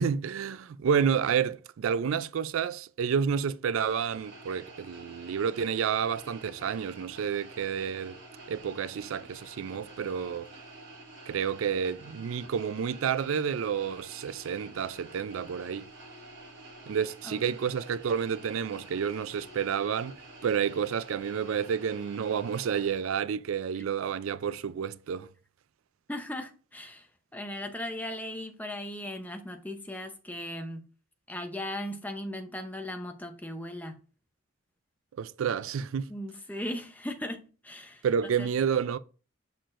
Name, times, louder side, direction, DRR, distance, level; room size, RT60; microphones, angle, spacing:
voice 1, 0.0-8.2 8.5-10.5 11.3-15.9 16.9-20.2 20.4-25.3 35.2-36.1 38.0-39.0, right 7 dB, 70° right, 0.3 m, -30 dB
sound 1, 3.8-23.0, right 2 dB, 55° right, 2.8 m, -49 dB
voice 2, 26.1-30.8 31.3-33.9 36.1-38.0 38.4-38.5, left 1 dB, 10° left, 0.7 m, -38 dB
6.6 x 5.8 x 2.5 m
head